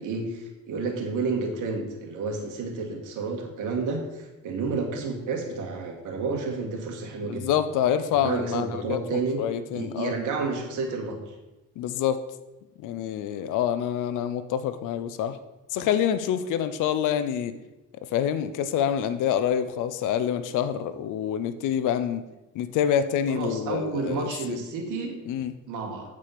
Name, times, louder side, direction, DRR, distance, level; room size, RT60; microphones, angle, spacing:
voice 1, 0.0-7.5 8.1-9.4 9.7-11.3 23.3-25.2 25.7-26.2, right 4 dB, 85° right, 2 dB, 1.7 m, -30 dB
voice 2, 7.2-10.1 11.8-12.2 12.8-15.4 15.7-17.5 18.1-22.2 22.5-24.6 25.3-25.5, left 9 dB, 90° left, 12 dB, 0.6 m, -27 dB
8.5 x 4.8 x 5.8 m, 1.0 s
cardioid pair, 90°, 30 cm